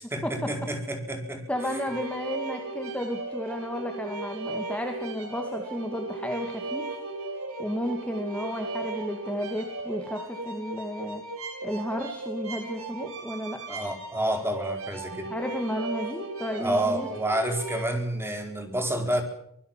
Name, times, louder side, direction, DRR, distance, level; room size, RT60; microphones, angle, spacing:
voice 1, 0.0-1.4 13.7-15.3 16.6-19.2, right 1 dB, 10° right, 4 dB, 4.5 m, -29 dB
voice 2, 1.5-6.9 7.6-11.2 11.6-13.6 15.3-17.1, equal, 5° left, 3 dB, 2.4 m, -33 dB
sound 1, 1.5-17.8, right 3 dB, 80° right, 6.0 m, -37 dB
25.5 x 20.0 x 7.5 m, 0.69 s
head